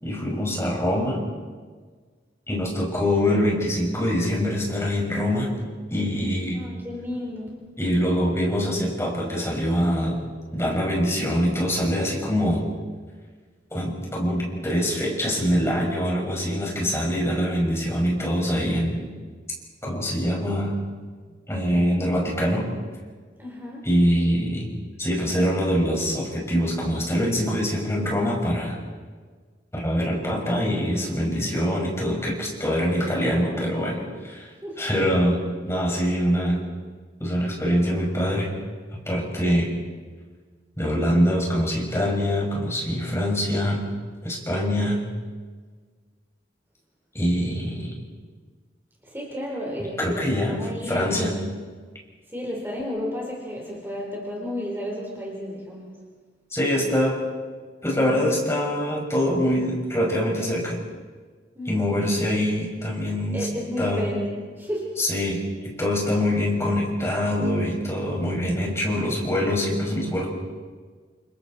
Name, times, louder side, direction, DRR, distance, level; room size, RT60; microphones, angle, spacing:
voice 1, 0.0-1.2 2.5-5.5 5.9-6.6 7.8-10.2 10.5-12.7 13.7-19.0 19.8-20.8 21.5-22.7 23.8-24.7 25.0-28.8 29.7-34.5 34.8-35.4 35.7-36.6 37.2-38.5 39.1-39.7 40.8-43.8 44.2-45.0 47.1-47.9 49.8-50.6 50.9-51.3 56.5-57.2 57.8-60.8 61.7-63.5 63.8-64.1 65.0-70.3, equal, 15° left, -2 dB, 5.9 m, -24 dB
voice 2, 6.5-7.7 23.4-23.9 34.6-34.8 49.0-51.4 52.3-56.0 61.5-62.1 63.3-65.0, left 1 dB, 15° right, -2 dB, 4.3 m, -32 dB
30.0 x 28.5 x 4.4 m, 1.5 s
head